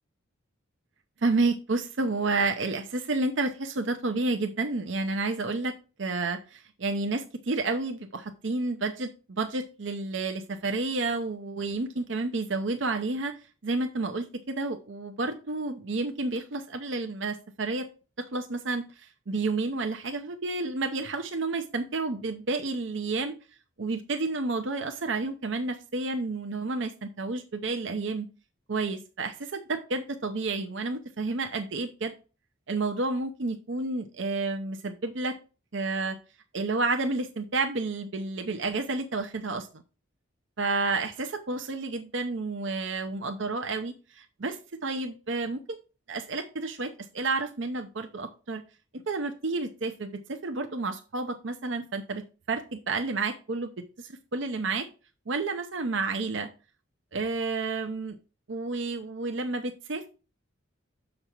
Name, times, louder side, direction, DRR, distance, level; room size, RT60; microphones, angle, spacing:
voice 1, 1.2-5.7 6.0-13.3 13.6-17.9 18.3-23.3 23.8-28.3 28.7-32.1 32.7-35.3 35.7-36.2 36.5-39.7 40.6-44.6 44.8-45.6 46.1-48.6 49.1-52.2 52.5-53.7 54.0-54.9 55.3-56.5 57.1-58.2 58.5-60.1, right 3 dB, 65° right, 6 dB, 0.7 m, -30 dB
7.1 x 5.3 x 4.4 m, 0.34 s
head